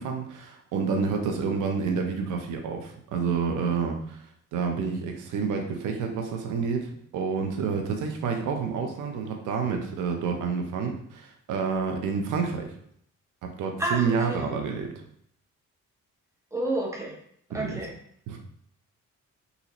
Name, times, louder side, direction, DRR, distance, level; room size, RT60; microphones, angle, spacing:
voice 1, 0.0-4.2 4.5-12.7 13.4-14.9 17.5-17.8 18.3-18.4, right 5 dB, 80° right, 3 dB, 0.8 m, -29 dB
voice 2, 13.8-14.5 16.5-17.1 17.5-17.9, right 1 dB, 10° right, -1 dB, 1.0 m, -30 dB
4.1 x 2.7 x 3.0 m, 0.66 s
cardioid pair, 90°, 30 cm